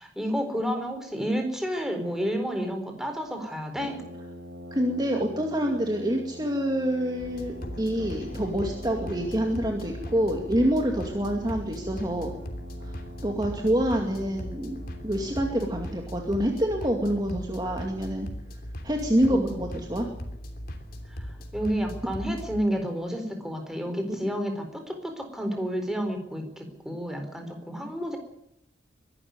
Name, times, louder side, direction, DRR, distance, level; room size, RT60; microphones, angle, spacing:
voice 1, 0.0-4.0 19.3-19.6 21.2-28.2, equal, 5° right, 5 dB, 4.3 m, -30 dB
Brass instrument, 3.8-16.0, equal, 70° right, 4.5 m, -44 dB
voice 2, 4.7-12.3 12.8-13.0 13.2-18.3 18.8-20.1 24.2-24.3, equal, 25° right, 2 dB, 2.3 m, -27 dB
sound 1, 7.2-22.6, equal, 55° left, 3.0 m, -39 dB
23.0 x 12.5 x 9.6 m, 0.80 s
head